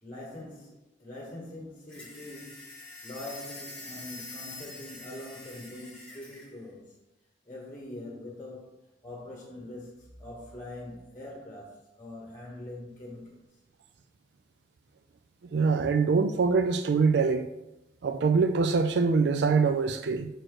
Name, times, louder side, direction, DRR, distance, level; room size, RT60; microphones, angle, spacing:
voice 1, 0.0-7.0 7.4-13.4, left 1 dB, 20° left, 1.2 m, -43 dB
sound 1, 1.9-6.5, left 2 dB, 5° left, 1.8 m, -45 dB
voice 2, 15.5-17.5 18.0-20.3, right 4 dB, 65° right, 0.4 m, -24 dB
6.3 x 4.4 x 4.7 m
head